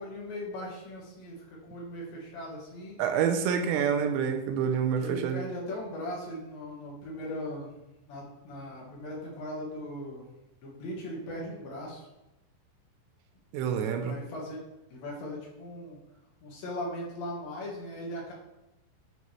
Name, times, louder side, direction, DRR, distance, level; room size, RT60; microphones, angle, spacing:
voice 1, 0.0-3.0 5.0-7.7 8.1-10.2 10.6-12.1 13.8-14.6 14.9-16.0 16.4-18.3, left 1 dB, 60° left, -4 dB, 2.8 m, -39 dB
voice 2, 3.0-5.4 13.5-14.2, right 7 dB, 85° right, 6 dB, 2.8 m, -27 dB
10.5 x 4.0 x 3.2 m, 0.92 s
omnidirectional pair, 5.3 m